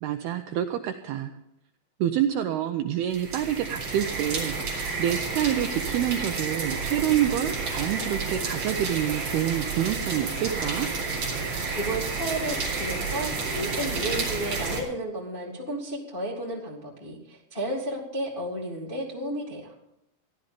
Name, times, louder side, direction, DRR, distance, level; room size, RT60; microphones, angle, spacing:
voice 1, 0.0-1.3 2.0-4.6 5.0-10.9, right 11 dB, 90° right, 6 dB, 2.3 m, -27 dB
sound 1, 3.1-14.8, right 4 dB, 40° right, 4.4 m, -30 dB
voice 2, 11.7-19.7, right 1 dB, 75° left, -3 dB, 0.5 m, -33 dB
15.0 x 12.0 x 5.1 m, 0.83 s
omnidirectional pair, 5.3 m